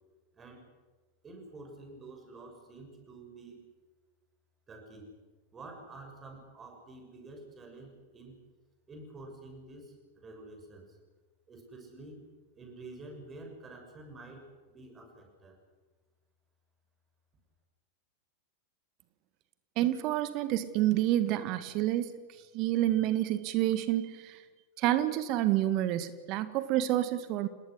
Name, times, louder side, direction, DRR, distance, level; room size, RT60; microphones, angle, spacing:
voice 1, 0.4-0.7 1.2-3.7 4.7-5.1 5.5-8.4 8.9-11.0 11.5-12.2 12.5-15.6, right 2 dB, 20° right, 3 dB, 6.9 m, -49 dB
voice 2, 19.8-22.1 22.5-24.4 24.8-27.5, right 13 dB, 40° right, 13 dB, 1.5 m, -28 dB
29.5 x 19.5 x 6.5 m, 1.3 s
figure-of-eight pair, 90°, 0 cm